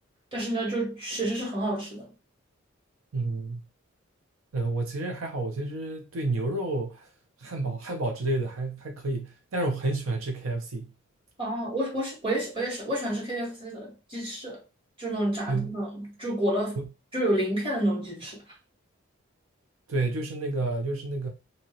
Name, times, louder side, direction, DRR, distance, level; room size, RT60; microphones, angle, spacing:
voice 1, 0.3-2.0 11.4-14.6 15.0-16.8 17.1-18.4, right 1 dB, 25° right, 1.5 m, -29 dB
voice 2, 3.1-3.6 4.5-7.1 7.4-10.9 15.5-15.7 16.8-16.9 19.9-21.3, right 2 dB, 80° right, 0.6 m, -30 dB
2.8 x 2.7 x 2.9 m
head